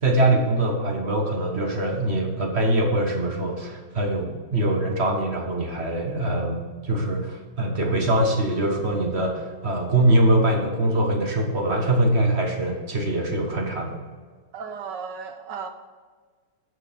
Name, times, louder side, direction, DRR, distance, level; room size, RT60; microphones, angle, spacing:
voice 1, 0.0-14.0, right 1 dB, 40° right, 2 dB, 1.5 m, -23 dB
voice 2, 14.5-15.7, right 6 dB, 75° right, 7 dB, 1.6 m, -34 dB
9.5 x 6.2 x 6.2 m, 1.5 s
omnidirectional pair, 2.0 m